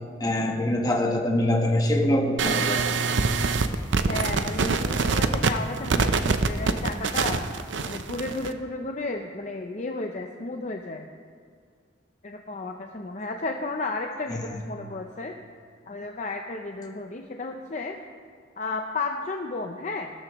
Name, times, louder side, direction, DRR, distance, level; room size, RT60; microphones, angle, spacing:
voice 1, 0.2-2.8 14.3-14.4, left 1 dB, 20° left, 1 dB, 1.2 m, -24 dB
sound 1, 2.4-8.5, right 4 dB, 80° right, 0.6 m, -24 dB
voice 2, 4.1-7.5 7.9-11.1 12.2-15.3 15.9-18.0 18.6-20.1, left 3 dB, 40° left, 3 dB, 0.6 m, -33 dB
16.5 x 13.0 x 3.1 m, 2.2 s
head